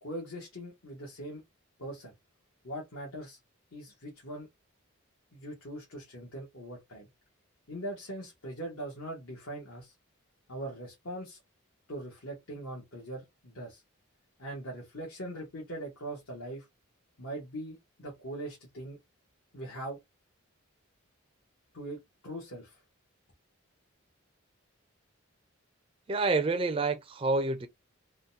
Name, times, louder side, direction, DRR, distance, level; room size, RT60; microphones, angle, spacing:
voice 1, 0.0-1.4 1.8-2.1 2.6-3.4 3.7-4.5 5.3-7.1 7.7-9.9 10.5-11.4 11.9-13.8 14.4-16.7 17.2-19.0 19.5-20.0 21.7-22.8, right 1 dB, 75° left, 1.3 m, -41 dB
voice 2, 26.1-27.7, right 3 dB, 25° right, 0.4 m, -28 dB
3.7 x 2.2 x 2.7 m
head